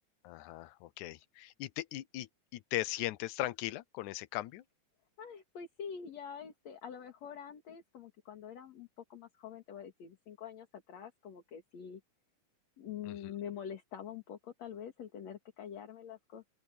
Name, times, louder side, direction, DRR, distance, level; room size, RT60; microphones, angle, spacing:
voice 1, 0.2-4.6 13.1-13.3, left 16 dB, 90° left, 2.2 m, -39 dB
voice 2, 5.2-12.0 12.8-16.5, left 8 dB, 65° left, 3.2 m, -46 dB
open air
omnidirectional pair, 3.3 m